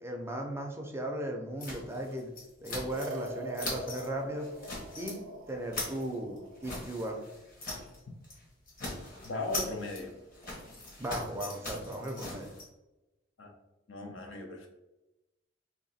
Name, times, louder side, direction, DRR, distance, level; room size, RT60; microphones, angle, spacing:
voice 1, 0.0-2.3 2.6-4.5 5.0-5.2 5.5-7.2 11.0-12.5, right 1 dB, 15° right, 1 dB, 0.4 m, -36 dB
sound 1, 1.6-3.3 3.5-4.1 4.4-5.2 5.5-8.0 8.2-8.4 8.7-12.6, left 2 dB, 45° left, 1.2 m, -41 dB
sound 2, 2.9-7.4, right 1 dB, 75° right, 0.5 m, -44 dB
voice 2, 9.2-10.1 13.4-13.5 13.9-14.7, left 2 dB, 75° left, 3 dB, 0.7 m, -37 dB
2.9 x 2.9 x 4.1 m, 1.0 s
head